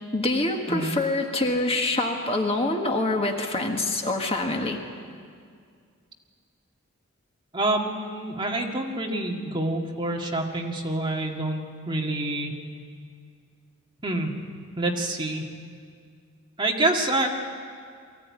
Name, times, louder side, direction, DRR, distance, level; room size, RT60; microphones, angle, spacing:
voice 1, 0.1-4.8, left 2 dB, 30° left, 3 dB, 1.6 m, -25 dB
voice 2, 7.5-12.5 14.0-14.3 14.8-15.4 16.6-17.3, right 2 dB, 25° right, 0 dB, 1.9 m, -27 dB
23.0 x 15.5 x 9.6 m, 2.2 s
head